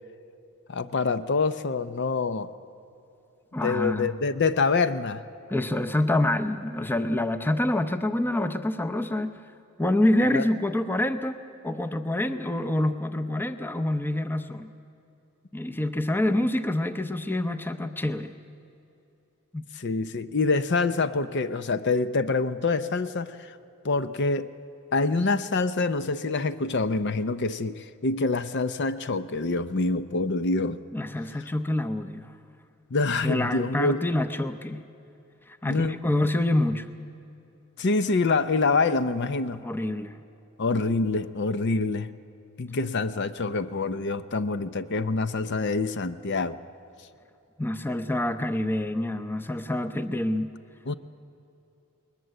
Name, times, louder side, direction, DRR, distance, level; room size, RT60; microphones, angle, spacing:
voice 1, 0.7-2.5 3.6-5.2 10.3-10.5 19.7-23.5 23.8-24.5 24.9-30.8 32.9-34.1 35.6-36.0 37.8-39.6 40.6-42.1 42.6-46.6 50.9-51.0, left 3 dB, 50° left, 13 dB, 0.6 m, -26 dB
voice 2, 3.5-4.1 5.5-9.4 9.8-11.4 11.6-14.7 15.5-18.3 19.5-19.6 30.9-32.3 33.2-34.8 35.5-36.9 39.6-40.2 47.6-50.5, left 1 dB, 10° left, 9 dB, 0.6 m, -26 dB
20.5 x 20.5 x 7.7 m, 2.8 s
head